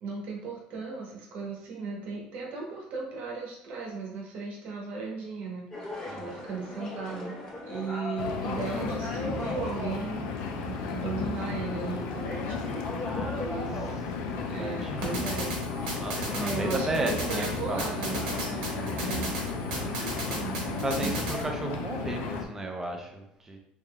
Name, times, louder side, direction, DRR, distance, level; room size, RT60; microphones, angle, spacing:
voice 1, 0.0-5.7 6.1-7.4 7.7-10.3 10.6-13.0 13.3-13.9 14.5-15.5 15.8-19.3 19.8-21.2, right 4 dB, 60° right, -1 dB, 1.0 m, -37 dB
sound 1, 5.7-21.4, left 2 dB, 25° left, 1.0 m, -40 dB
voice 2, 6.1-6.4 13.1-13.6 14.6-15.1 16.0-18.3 20.8-23.6, right 2 dB, 15° right, 3 dB, 0.5 m, -34 dB
Engine, 8.2-22.5, left 5 dB, 85° left, 0.4 m, -34 dB
sound 2, 15.0-21.4, right 1 dB, 90° right, 1.3 m, -36 dB
3.6 x 3.1 x 2.2 m, 0.80 s
cardioid pair, 140°, 3 cm